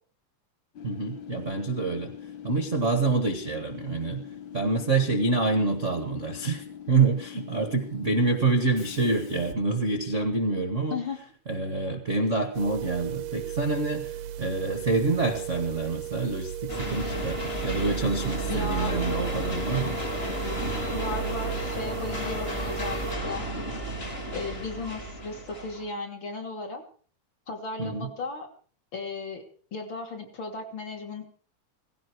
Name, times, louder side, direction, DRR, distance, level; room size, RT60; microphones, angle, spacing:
Train / Subway metro underground, 0.7-9.5, left 9 dB, 75° left, 1.1 m, -43 dB
voice 1, 0.8-2.1 2.4-4.2 4.5-11.0 11.5-20.0 27.8-28.1, right 3 dB, 35° right, 6 dB, 1.2 m, -27 dB
sound 1, 12.5-23.2, right 11 dB, 70° right, 1.7 m, -36 dB
sound 2, 16.7-25.9, right 1 dB, 20° left, 2.1 m, -32 dB
voice 2, 18.5-18.9 20.9-23.5 24.3-26.8 27.5-28.5 28.9-29.4 29.7-31.3, left 3 dB, 40° left, 4 dB, 3.3 m, -35 dB
18.0 x 16.5 x 4.7 m, 0.43 s
omnidirectional pair, 3.7 m